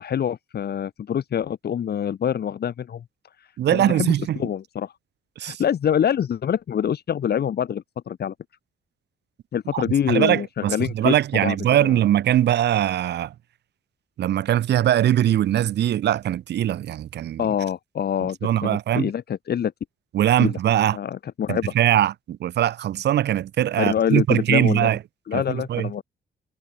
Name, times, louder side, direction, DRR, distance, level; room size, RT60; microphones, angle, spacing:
voice 1, 0.0-3.0 3.7-4.9 5.4-8.3 9.5-12.0 17.4-19.7 20.4-20.6 20.9-21.6 23.8-24.9 25.3-26.0, left 9 dB, 70° left, 2.6 m, -25 dB
voice 2, 3.6-4.4 5.4-5.6 9.7-13.3 14.2-17.5 18.4-19.1 20.1-21.0 21.5-25.0 25.3-25.9, right 11 dB, 80° right, 1.2 m, -21 dB
cardioid pair, 80°, 17 cm